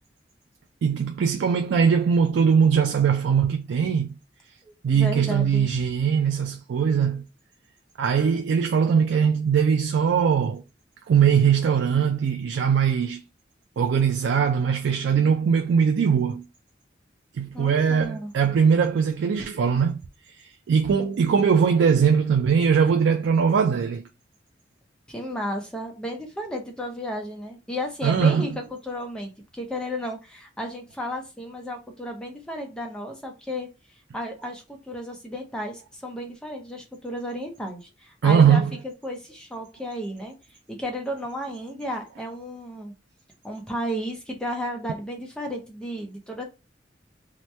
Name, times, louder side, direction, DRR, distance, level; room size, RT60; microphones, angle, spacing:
voice 1, 0.8-4.1 4.8-7.2 8.0-10.6 11.1-13.2 13.8-16.4 17.4-20.0 20.7-24.0 28.0-28.4 38.2-38.7, right 7 dB, 80° right, 0.3 m, -21 dB
voice 2, 4.9-5.7 17.5-18.3 25.1-28.5 28.8-33.7 34.1-38.6 39.0-40.3 40.7-42.9 43.4-46.4, equal, 5° left, 0.5 m, -33 dB
2.9 x 2.1 x 3.1 m
head